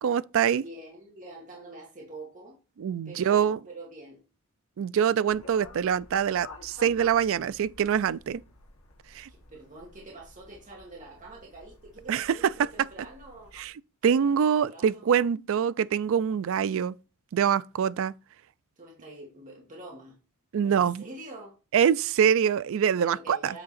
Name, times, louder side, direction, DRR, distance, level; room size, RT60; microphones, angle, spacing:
voice 1, 0.0-0.6 2.8-3.6 4.8-8.4 9.1-9.3 12.1-12.3 13.6-13.7 14.0-16.9 17.3-18.1 20.5-21.0 21.7-23.5, right 8 dB, 60° right, 0.3 m, -24 dB
voice 2, 0.6-2.6 3.1-4.2 9.3-13.5 14.3-15.1 18.8-20.2 20.6-21.6 23.0-23.6, right 2 dB, 35° right, 1.7 m, -45 dB
sound 1, 5.3-13.7, left 3 dB, 70° left, 1.6 m, -52 dB
7.9 x 3.8 x 4.2 m
head